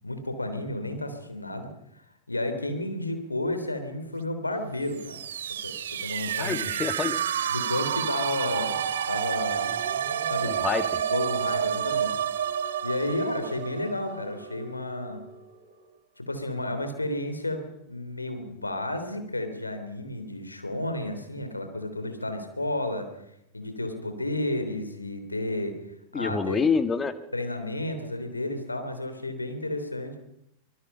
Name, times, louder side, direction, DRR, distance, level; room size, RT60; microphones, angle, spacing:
voice 1, 0.0-2.0 2.3-5.2 5.6-6.8 7.5-9.7 10.3-10.6 11.1-12.2 12.8-15.2 16.2-23.2 23.5-25.8 26.1-26.7 27.3-30.2, left 1 dB, 80° left, 7 dB, 3.5 m, -32 dB
sound 1, 4.9-14.6, right 9 dB, 65° right, 1.1 m, -29 dB
voice 2, 6.4-7.2 10.4-11.0 26.1-27.1, left 5 dB, 20° left, 10 dB, 1.7 m, -27 dB
sound 2, 9.4-15.9, left 1 dB, 35° left, 6.3 m, -47 dB
24.5 x 21.0 x 5.7 m, 0.79 s
figure-of-eight pair, 90°, 0 cm